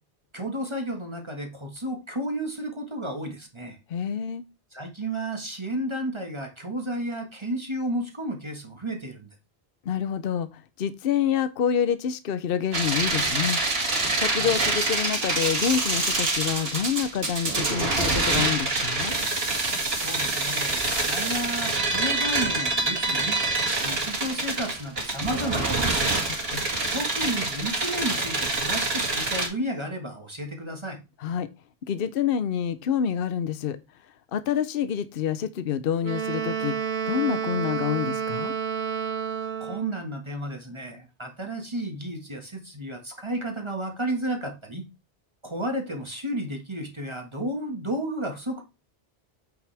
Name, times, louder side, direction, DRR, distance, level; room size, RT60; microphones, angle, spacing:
voice 1, 0.3-3.8 4.7-9.3 14.3-14.6 19.9-23.4 23.8-26.1 26.9-31.0 39.6-44.8 45.4-48.6, right 1 dB, 25° right, 1.6 m, -32 dB
voice 2, 3.9-4.4 9.9-13.6 14.2-19.1 26.5-26.7 31.2-31.5 31.9-33.8 34.3-36.7 37.1-38.5, left 8 dB, 65° left, 0.8 m, -27 dB
sound 1, 12.7-29.5, right 2 dB, 70° right, 2.2 m, -26 dB
Wind instrument woodwind instrument, 36.0-40.0, right 7 dB, 50° right, 1.0 m, -30 dB
8.6 x 6.1 x 3.3 m
omnidirectional pair, 1.1 m